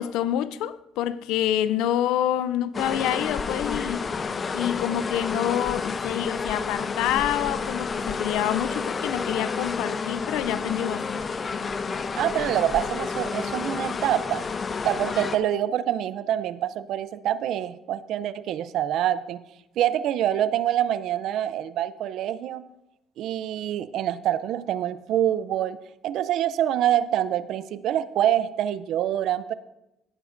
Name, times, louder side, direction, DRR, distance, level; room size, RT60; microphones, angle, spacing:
voice 1, 0.0-4.2 4.5-11.2, left 11 dB, 85° left, 0.4 m, -27 dB
sound 1, 2.7-15.4, left 5 dB, 35° left, 0.6 m, -30 dB
voice 2, 12.2-14.5 14.8-19.4 19.8-22.6 23.2-25.8 26.0-29.5, right 11 dB, 75° right, 0.5 m, -26 dB
17.0 x 9.4 x 2.6 m
cardioid pair, 105°, 0 cm